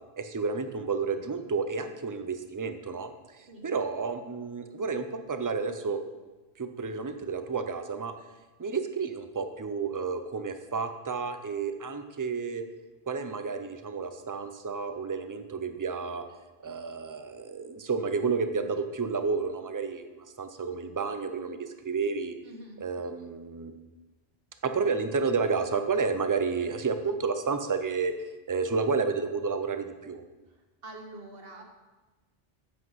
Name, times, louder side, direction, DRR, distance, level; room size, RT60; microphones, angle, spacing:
voice 1, 0.2-6.0 6.6-8.1 8.6-12.6 13.1-16.2 16.6-22.3 22.8-23.7 24.6-28.1 28.5-30.2, right 5 dB, 25° right, 8 dB, 0.5 m, -31 dB
voice 2, 22.4-22.8 30.8-31.6, right 1 dB, 60° right, 3 dB, 1.5 m, -45 dB
7.9 x 7.9 x 5.6 m, 1.2 s
omnidirectional pair, 1.1 m